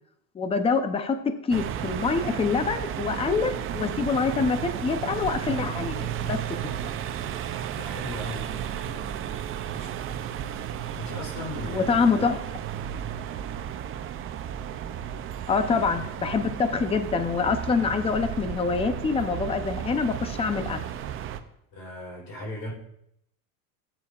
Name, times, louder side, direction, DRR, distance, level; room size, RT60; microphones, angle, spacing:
voice 1, 0.3-6.4 11.7-12.4 15.5-20.8, left 5 dB, 15° left, 9 dB, 0.7 m, -25 dB
sound 1, 1.5-21.4, right 10 dB, 30° right, 0.6 m, -33 dB
voice 2, 7.7-9.2 9.7-9.9 10.9-12.3 15.1-15.3 21.7-22.7, left 1 dB, 50° left, -1 dB, 4.0 m, -38 dB
15.5 x 8.9 x 2.5 m, 0.76 s
supercardioid pair, 130°, 42 cm